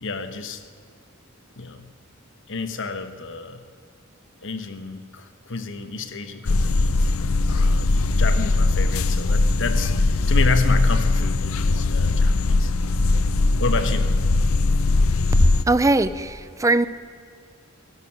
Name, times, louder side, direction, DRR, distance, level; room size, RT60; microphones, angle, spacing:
voice 1, 0.0-0.6 1.6-1.9 2.5-3.6 4.4-7.0 7.5-12.7 13.6-14.1, left 3 dB, 65° left, 9 dB, 1.2 m, -30 dB
sound 1, 6.5-15.6, left 2 dB, 80° left, 0.6 m, -20 dB
voice 2, 15.7-16.9, right 2 dB, 15° right, 14 dB, 0.5 m, -20 dB
16.0 x 11.5 x 6.3 m, 2.2 s
head